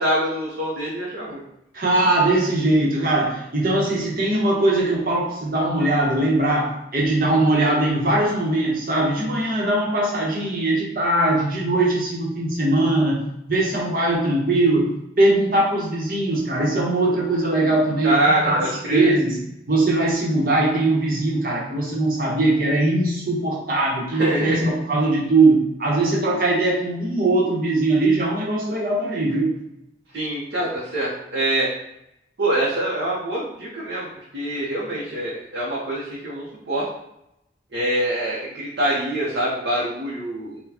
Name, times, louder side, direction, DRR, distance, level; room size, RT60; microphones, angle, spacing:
voice 1, 0.0-1.4 18.0-19.1 24.1-24.7 30.1-31.7 32.4-36.9 37.7-40.6, right 1 dB, 85° right, -5 dB, 0.7 m, -25 dB
voice 2, 1.7-13.2 13.5-14.9 15.2-18.1 18.4-18.6 18.9-19.4 19.7-29.5, right 2 dB, 55° right, -3 dB, 0.9 m, -20 dB
4.0 x 2.2 x 2.8 m, 0.82 s
head